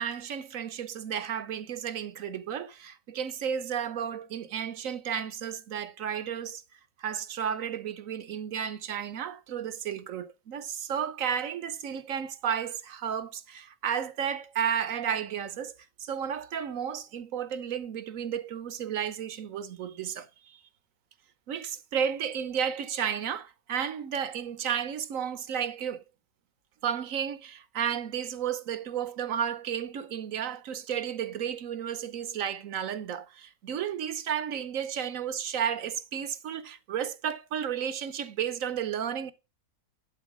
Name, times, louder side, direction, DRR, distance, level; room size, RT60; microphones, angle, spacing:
voice 1, 0.0-6.6 7.0-15.7 16.0-20.6 21.5-26.0 26.8-39.3, right 8 dB, 65° right, 1.2 m, -33 dB
11.0 x 4.3 x 6.0 m
omnidirectional pair, 1.6 m